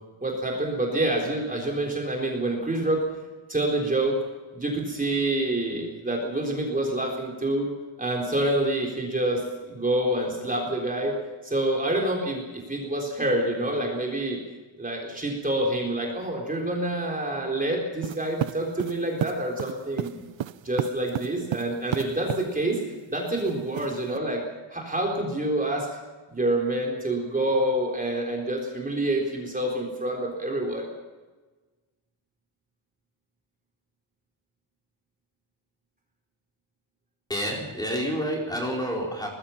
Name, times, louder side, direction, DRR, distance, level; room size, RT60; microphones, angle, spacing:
voice 1, 0.2-3.0 3.5-4.2 4.5-7.7 8.0-11.1 11.4-14.4 14.8-20.2 20.6-22.8 23.1-24.4 24.7-25.9 26.3-30.9, right 1 dB, 15° right, -1 dB, 4.0 m, -27 dB
sound 1, 18.0-22.5 23.4-24.2, right 12 dB, 70° right, 0.7 m, -31 dB
voice 2, 37.3-39.3, equal, 10° left, -1 dB, 4.6 m, -29 dB
23.5 x 20.5 x 5.8 m, 1.3 s
wide cardioid pair, 175°, 47 cm